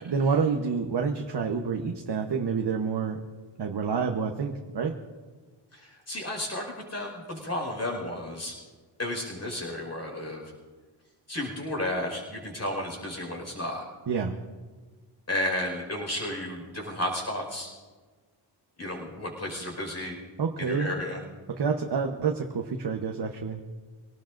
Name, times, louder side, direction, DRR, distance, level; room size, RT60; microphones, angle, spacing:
voice 1, 0.0-3.2 3.6-5.0 14.1-14.4 20.4-21.0 21.5-23.6, right 5 dB, 55° right, 2 dB, 1.1 m, -28 dB
voice 2, 5.7-8.6 9.0-10.4 11.3-13.8 15.3-17.7 18.8-20.2 20.6-21.2, left 1 dB, 30° left, 0 dB, 5.0 m, -33 dB
25.0 x 18.5 x 2.6 m, 1.4 s
wide cardioid pair, 120°, 47 cm